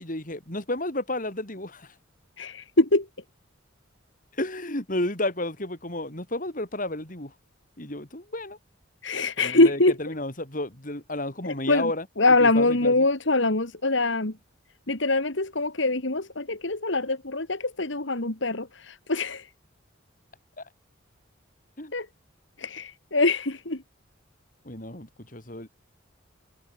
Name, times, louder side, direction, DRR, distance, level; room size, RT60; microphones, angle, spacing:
voice 1, 0.0-1.9 4.3-7.3 7.8-8.6 9.4-12.1 12.4-13.1 20.6-20.7 21.8-21.9 24.6-25.7, left 1 dB, 40° left, 4.8 m, -32 dB
voice 2, 2.4-3.1 9.0-9.9 11.4-11.9 12.2-14.3 14.9-19.5 21.9-22.1 22.6-23.8, left 2 dB, 65° left, 2.4 m, -23 dB
head